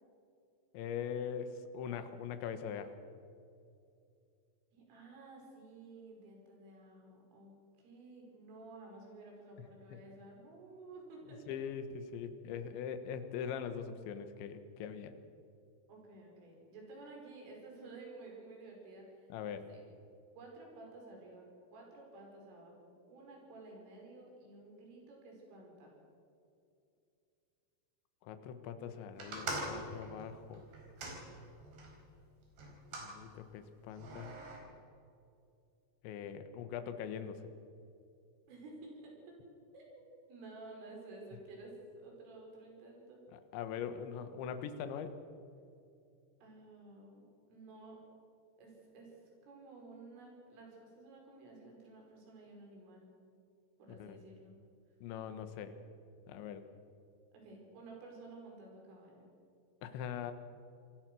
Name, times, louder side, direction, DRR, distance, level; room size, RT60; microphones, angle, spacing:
voice 1, 0.7-2.9 9.9-10.0 11.5-15.1 19.3-19.7 28.2-30.6 33.0-34.3 36.0-37.4 43.3-45.1 54.0-54.2 55.0-55.7 56.3-56.6 59.8-60.3, left 7 dB, 70° left, 9 dB, 3.3 m, -42 dB
voice 2, 4.7-7.5 7.8-11.4 15.9-19.8 20.4-25.9 38.5-39.1 39.7-40.0 40.3-43.2 46.4-48.0 48.6-53.1 53.8-54.5 57.3-59.3, right 2 dB, 70° right, -1 dB, 8.0 m, -53 dB
sound 1, 29.2-31.9 32.6-33.1 33.9-34.6, right 2 dB, 55° right, 6.3 m, -43 dB
27.5 x 19.5 x 6.3 m, 2.6 s
omnidirectional pair, 5.9 m